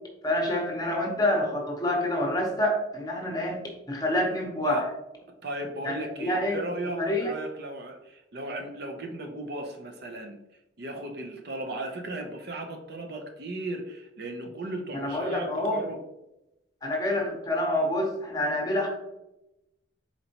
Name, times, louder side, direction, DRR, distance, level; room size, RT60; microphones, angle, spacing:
voice 1, 0.2-3.6 3.9-4.8 5.8-6.6 7.0-7.3 14.9-15.8 16.8-18.9, left 1 dB, 20° left, 0 dB, 0.8 m, -27 dB
voice 2, 5.4-10.4 10.8-16.0, right 2 dB, 55° right, 4 dB, 0.6 m, -36 dB
4.3 x 4.0 x 2.8 m, 0.93 s
head